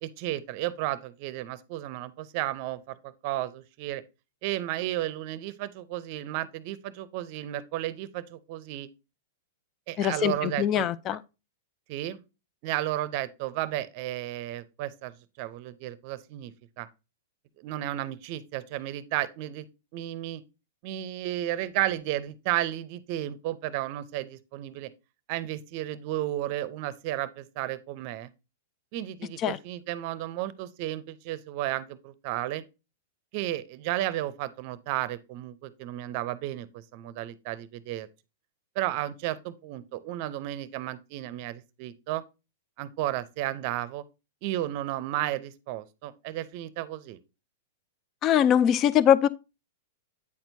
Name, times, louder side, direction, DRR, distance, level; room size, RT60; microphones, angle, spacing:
voice 1, 0.0-4.0 4.4-8.9 9.9-10.9 11.9-12.2 12.6-15.1 15.4-16.9 17.6-19.7 19.9-20.4 20.8-24.9 25.3-28.3 28.9-32.6 33.3-38.1 38.8-42.2 42.8-44.0 44.4-47.2, right 14 dB, 50° right, 0.6 m, -33 dB
voice 2, 10.0-11.2 29.4-29.6 48.2-49.3, left 10 dB, 35° left, 0.4 m, -22 dB
8.4 x 4.4 x 2.7 m
hypercardioid pair, 125°, 0 cm